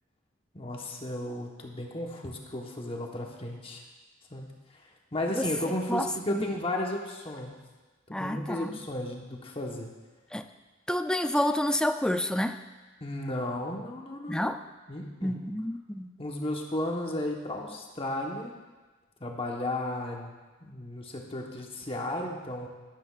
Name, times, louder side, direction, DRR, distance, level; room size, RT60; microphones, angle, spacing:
voice 1, 0.5-3.8 4.3-7.5 8.1-9.9 13.0-14.5 14.9-15.4 16.2-18.5 19.2-20.3 20.6-22.7, left 1 dB, 30° left, 0 dB, 1.1 m, -34 dB
voice 2, 5.9-6.5 8.1-8.7 10.3-10.5 10.9-12.6 14.3-14.6 15.2-16.1, left 1 dB, 5° left, 8 dB, 0.3 m, -29 dB
12.0 x 10.5 x 2.4 m, 1.3 s
head